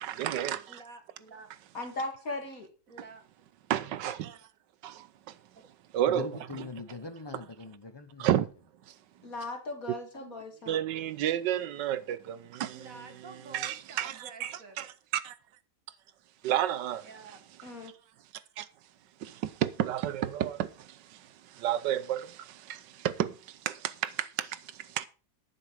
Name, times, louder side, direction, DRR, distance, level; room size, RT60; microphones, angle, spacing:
voice 1, 0.0-0.8 3.7-4.4 4.8-5.4 5.9-6.3 8.2-8.5 8.9-9.0 10.7-12.9 13.5-14.9 15.1-15.3 16.4-17.1 18.6-18.7 19.2-25.1, right 11 dB, 85° right, 1.4 m, -31 dB
voice 2, 0.7-1.5 2.9-3.2 5.6-5.7 12.7-14.9 17.0-17.4, right 3 dB, 50° right, 2.0 m, -49 dB
voice 3, 1.7-2.7 9.2-10.8 17.6-17.9, left 2 dB, 55° left, 2.5 m, -38 dB
voice 4, 6.1-8.3 10.1-10.3, left 3 dB, 30° left, 0.4 m, -42 dB
11.0 x 9.1 x 4.7 m
omnidirectional pair, 1.9 m